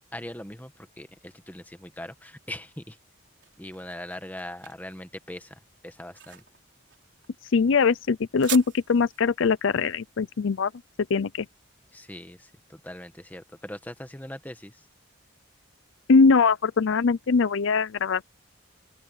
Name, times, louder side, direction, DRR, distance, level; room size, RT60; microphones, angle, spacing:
voice 1, 0.1-3.0 3.6-6.4 11.9-14.9, left 1 dB, 10° left, 1.3 m, -41 dB
sound 1, 3.0-11.9, right 11 dB, 60° right, 4.5 m, -43 dB
voice 2, 7.5-10.7 11.1-11.5 16.1-18.2, left 4 dB, 70° left, 0.5 m, -21 dB
head